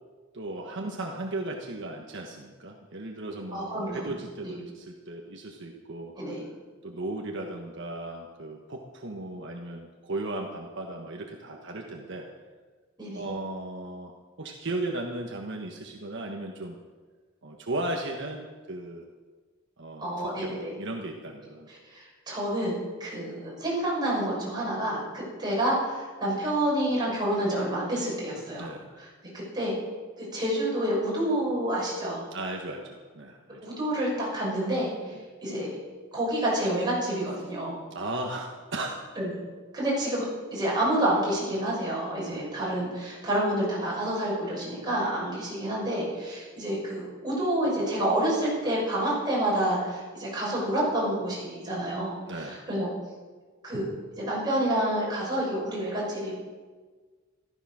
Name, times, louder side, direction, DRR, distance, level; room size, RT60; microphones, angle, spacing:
voice 1, 0.3-6.1 6.8-12.3 13.1-14.1 14.4-16.8 17.4-19.0 19.8-21.7 28.6-28.9 32.3-33.7 37.9-39.0 42.3-42.6 52.3-52.6, right 2 dB, 65° right, 1 dB, 1.4 m, -36 dB
voice 2, 3.5-4.2 4.4-4.5 6.2-6.4 13.0-13.2 20.0-20.7 21.7-28.7 29.0-29.1 29.3-29.7 30.2-32.2 33.6-34.9 35.4-35.7 36.1-37.8 39.2-39.3 39.7-40.2 40.5-52.9 53.6-53.9 54.2-56.3, right 1 dB, 20° right, -5 dB, 6.2 m, -28 dB
14.0 x 13.5 x 6.3 m, 1.4 s
head